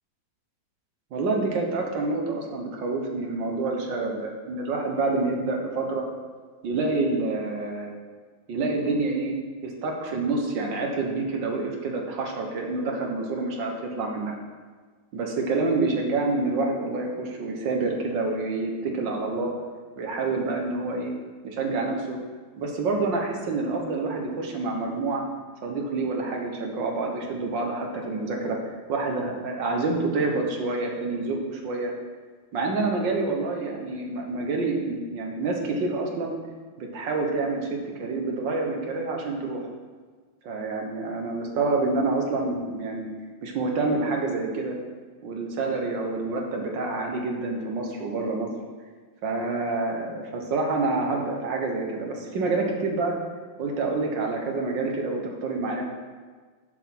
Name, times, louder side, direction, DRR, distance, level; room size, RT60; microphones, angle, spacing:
voice 1, 1.1-6.0 6.6-8.0 8.5-9.4 9.6-14.3 15.1-19.5 20.0-21.1 21.4-22.2 22.6-25.2 25.6-31.9 32.5-36.3 36.8-39.7 40.4-43.1 43.4-44.8 45.2-48.5 49.2-53.1 53.6-55.8, right 3 dB, 65° right, 1 dB, 1.8 m, -27 dB
7.2 x 6.4 x 5.8 m, 1.5 s
omnidirectional pair, 2.2 m